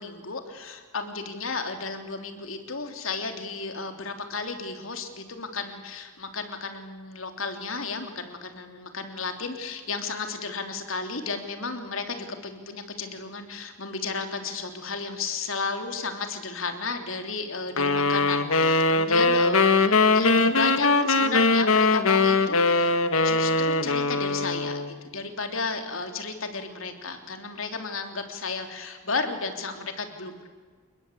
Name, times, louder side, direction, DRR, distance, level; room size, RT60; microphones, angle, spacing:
voice 1, 0.0-22.9 23.2-30.5, left 4 dB, 70° left, 5 dB, 3.4 m, -33 dB
sound 1, 17.8-24.9, left 3 dB, 85° left, 1.6 m, -21 dB
29.0 x 20.5 x 8.6 m, 1.4 s
head